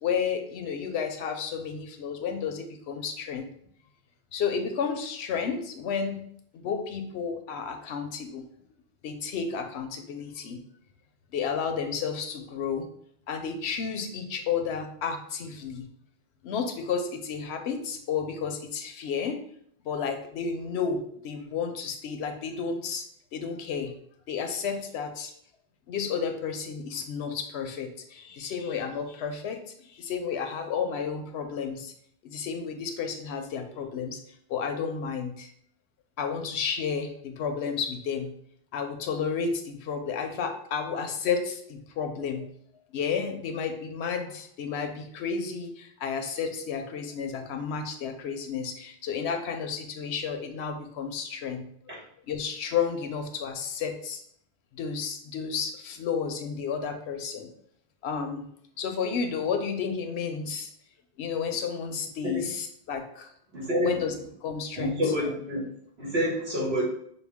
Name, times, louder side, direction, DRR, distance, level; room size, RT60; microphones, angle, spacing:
voice 1, 0.0-3.4 4.3-6.2 6.5-8.5 9.0-10.6 11.3-12.9 13.3-15.9 16.4-19.4 19.8-23.1 23.3-23.9 24.3-25.3 25.9-29.6 29.9-31.9 32.2-34.2 34.5-35.5 36.2-38.3 38.7-42.5 42.7-51.7 52.3-54.2 54.7-57.5 58.0-58.5 58.8-60.7 61.2-63.3 63.8-64.1 64.4-65.0, left 6 dB, 85° left, 6 dB, 0.9 m, -32 dB
voice 2, 63.5-64.0 64.8-65.6 66.0-66.8, equal, 80° right, -4 dB, 1.8 m, -27 dB
5.9 x 2.2 x 3.5 m, 0.67 s
omnidirectional pair, 1.1 m